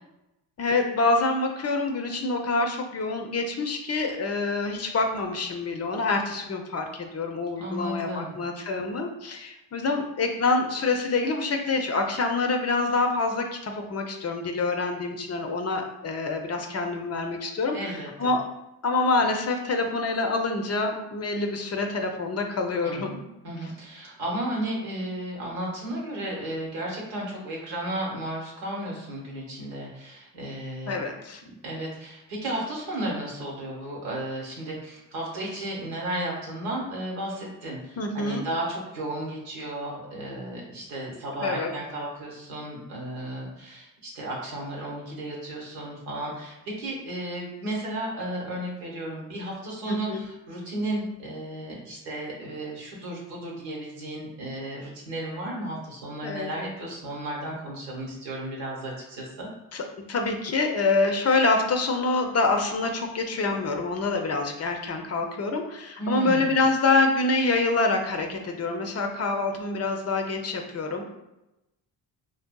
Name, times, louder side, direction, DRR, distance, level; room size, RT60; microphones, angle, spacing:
voice 1, 0.6-18.4 18.8-23.1 30.9-31.4 38.0-38.4 41.4-41.7 49.9-50.2 56.2-56.5 59.7-71.1, left 3 dB, 35° left, 4 dB, 0.5 m, -26 dB
voice 2, 7.6-8.3 17.7-18.3 22.8-23.1 23.4-31.0 31.6-59.5 66.0-66.5, right 1 dB, 90° right, -3 dB, 1.1 m, -34 dB
3.3 x 2.6 x 2.2 m, 0.94 s
supercardioid pair, 55°, 46 cm